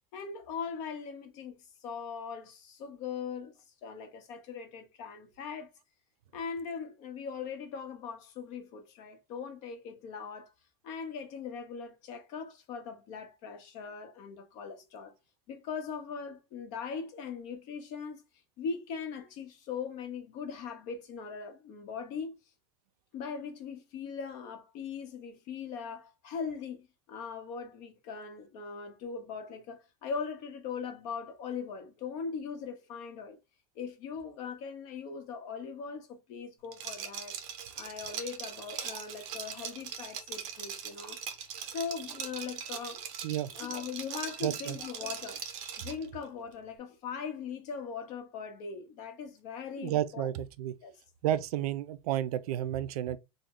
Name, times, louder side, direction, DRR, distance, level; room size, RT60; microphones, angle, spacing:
voice 1, 0.1-3.5 3.8-5.7 6.3-10.5 10.8-15.1 15.5-18.2 18.6-22.4 23.1-33.4 33.8-37.4 37.8-43.0 43.5-45.4 45.8-50.3 50.8-50.9, left 6 dB, 40° left, 0.8 m, -40 dB
Liquid, 36.7-46.1, right 8 dB, 55° right, 0.7 m, -41 dB
voice 2, 44.4-44.8 49.8-50.7 51.2-53.2, right 12 dB, 90° right, 0.4 m, -31 dB
3.0 x 2.1 x 3.6 m
supercardioid pair, 165°, 19 cm